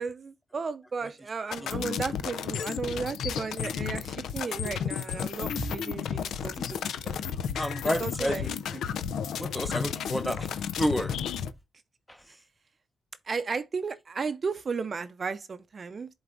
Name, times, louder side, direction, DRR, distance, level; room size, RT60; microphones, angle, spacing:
voice 1, 0.0-6.8 7.0-7.2 8.0-8.5 13.3-16.1, right 5 dB, 45° right, 0.5 m, -34 dB
sound 1, 1.5-11.5, left 8 dB, 85° left, 0.4 m, -33 dB
voice 2, 7.6-8.5 9.4-10.5 10.8-11.1, equal, 5° left, 0.7 m, -30 dB
11.0 x 3.9 x 2.4 m
cardioid pair, 90°, 0 cm